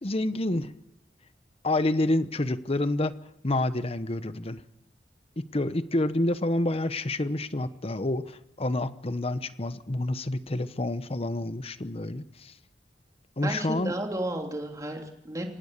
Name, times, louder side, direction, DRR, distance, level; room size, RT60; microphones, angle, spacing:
voice 1, 0.0-0.7 1.6-3.2 3.4-4.6 5.4-12.5 13.4-14.0, left 1 dB, 35° left, 13 dB, 1.0 m, -28 dB
voice 2, 13.4-15.5, right 1 dB, 20° right, 2 dB, 3.2 m, -32 dB
25.5 x 18.5 x 6.7 m, 0.86 s
head